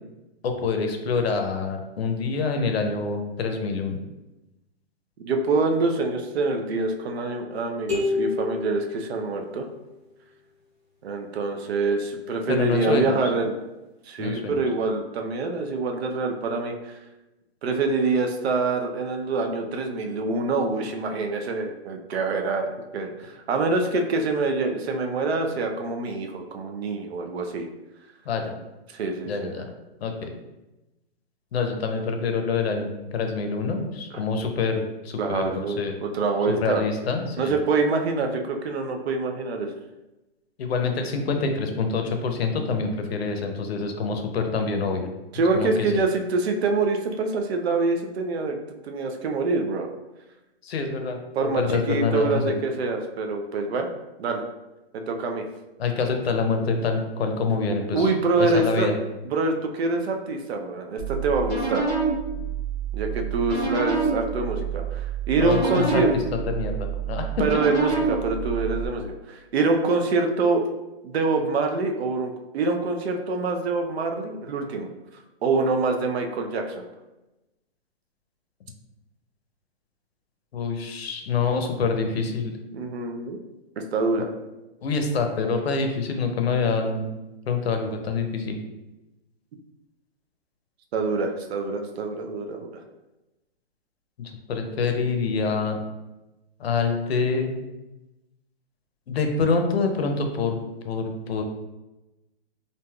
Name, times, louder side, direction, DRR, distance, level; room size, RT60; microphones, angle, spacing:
voice 1, 0.4-4.0 12.5-13.3 14.2-14.6 28.3-28.6 29.3-29.7 30.0-30.3 31.5-36.0 36.5-37.6 40.6-45.1 45.5-45.7 50.6-52.5 55.8-58.1 58.4-58.9 65.4-67.3 80.5-82.5 84.8-87.1 87.5-88.6 94.2-95.8 96.6-97.6 99.1-100.6 100.8-101.4, left 4 dB, 75° left, 5 dB, 0.6 m, -26 dB
voice 2, 5.2-9.7 11.0-13.5 14.1-16.9 17.6-27.7 28.9-29.5 35.2-36.8 37.4-39.7 45.3-48.6 48.8-49.9 51.4-53.9 54.2-54.4 54.9-55.4 57.9-58.9 59.2-61.8 62.9-66.1 67.4-70.6 71.0-74.9 75.4-76.8 82.7-83.4 83.9-84.3 90.9-92.7, right 3 dB, 80° right, 4 dB, 0.5 m, -25 dB
sound 1, 7.9-9.8, left 4 dB, 15° right, 1.0 m, -29 dB
sound 2, 61.0-68.9, right 5 dB, 5° left, 0.6 m, -28 dB
3.2 x 2.6 x 2.2 m, 1.0 s
hypercardioid pair, 170°, 32 cm